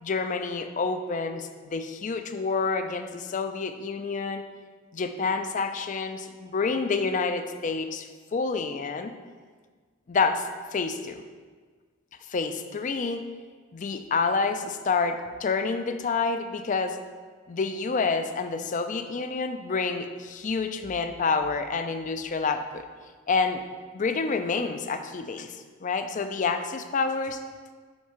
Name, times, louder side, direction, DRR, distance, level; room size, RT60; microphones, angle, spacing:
voice 1, 0.0-4.4 4.9-9.2 10.1-11.2 12.3-13.3 13.7-17.0 17.5-22.9 23.3-23.6 23.9-27.4, left 4 dB, 40° left, 8 dB, 0.4 m, -28 dB
5.8 x 5.6 x 4.4 m, 1.5 s
head